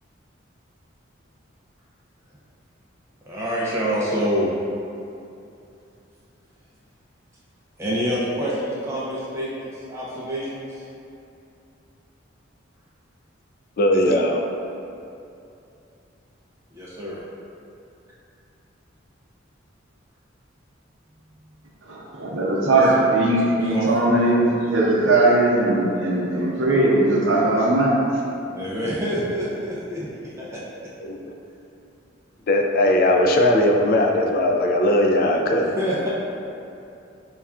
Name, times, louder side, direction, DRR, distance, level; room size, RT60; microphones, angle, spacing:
voice 1, 3.3-4.5 7.8-10.8 16.7-17.2 22.8-22.9 23.4-23.9 28.5-30.6 35.6-36.1, equal, 15° right, -7 dB, 0.5 m, -27 dB
voice 2, 13.8-14.4 31.0-31.2 32.5-35.7, left 1 dB, 50° left, 2 dB, 0.4 m, -19 dB
voice 3, 21.9-27.9, right 2 dB, 75° right, -4 dB, 0.7 m, -19 dB
5.4 x 2.3 x 2.3 m, 2.7 s
head